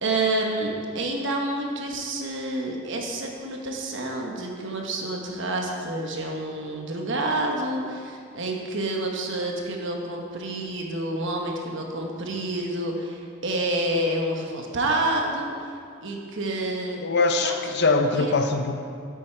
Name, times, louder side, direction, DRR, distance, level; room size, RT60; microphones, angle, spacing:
voice 1, 0.0-15.5 16.0-17.0 17.4-17.5 18.1-18.3, right 2 dB, 65° right, 1 dB, 1.1 m, -28 dB
voice 2, 17.0-18.7, left 3 dB, 55° left, 6 dB, 0.6 m, -22 dB
8.7 x 7.9 x 4.4 m, 2.3 s
head